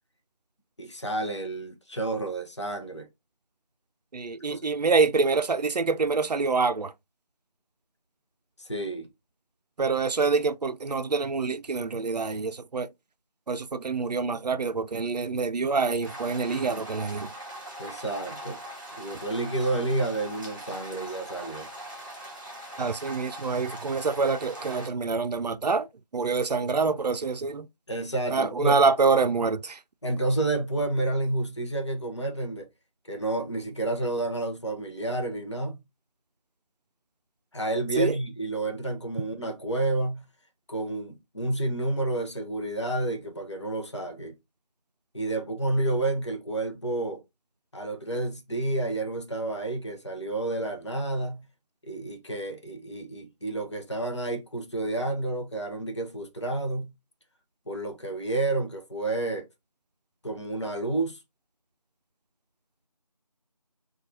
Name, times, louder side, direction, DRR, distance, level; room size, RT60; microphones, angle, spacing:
voice 1, 0.8-3.1 4.5-4.7 8.6-9.1 17.8-18.6 19.0-21.7 27.9-28.8 30.0-32.7 33.1-35.8 37.5-40.3 40.7-44.4 45.1-47.2 47.7-51.5 51.8-56.9 57.7-59.5 60.2-61.2, right 2 dB, 45° left, 0.6 m, -30 dB
voice 2, 4.1-6.9 9.8-12.9 13.5-17.3 22.8-25.9 26.1-27.7 28.3-29.8 38.0-38.2, right 4 dB, 90° right, 0.4 m, -26 dB
sound 1, 16.0-24.9, right 1 dB, 30° right, 1.1 m, -41 dB
4.4 x 2.3 x 2.6 m
figure-of-eight pair, 175°, 21 cm